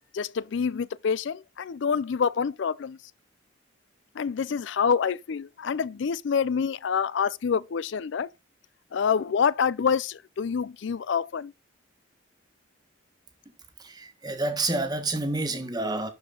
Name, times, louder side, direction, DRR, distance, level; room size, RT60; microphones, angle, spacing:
voice 1, 0.1-3.0 4.2-8.3 8.9-11.5, left 6 dB, 65° left, 0.4 m, -27 dB
voice 2, 13.8-16.1, right 2 dB, 20° right, 1.3 m, -29 dB
12.0 x 4.9 x 3.8 m
head